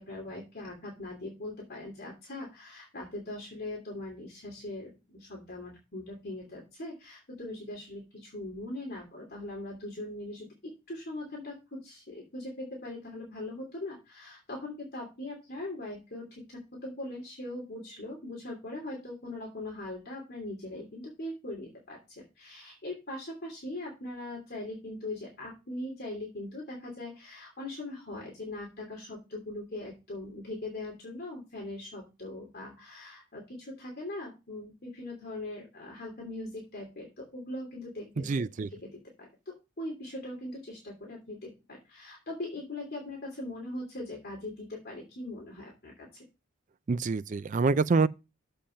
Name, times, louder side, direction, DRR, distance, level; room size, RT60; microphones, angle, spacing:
voice 1, 0.0-46.2, left 1 dB, 50° left, 2.8 m, -41 dB
voice 2, 38.3-38.7 46.9-48.1, right 4 dB, 35° right, 0.4 m, -26 dB
7.1 x 5.2 x 5.6 m
head